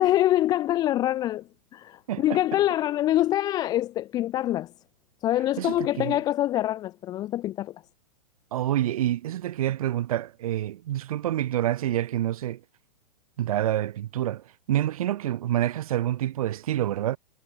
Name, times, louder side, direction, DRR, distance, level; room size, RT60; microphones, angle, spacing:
voice 1, 0.0-4.7 5.2-7.8, left 13 dB, 20° left, 0.4 m, -25 dB
voice 2, 2.1-2.4 5.6-6.2 8.5-12.6 13.4-17.2, right 12 dB, 60° right, 1.7 m, -27 dB
figure-of-eight pair, 110°, 21 cm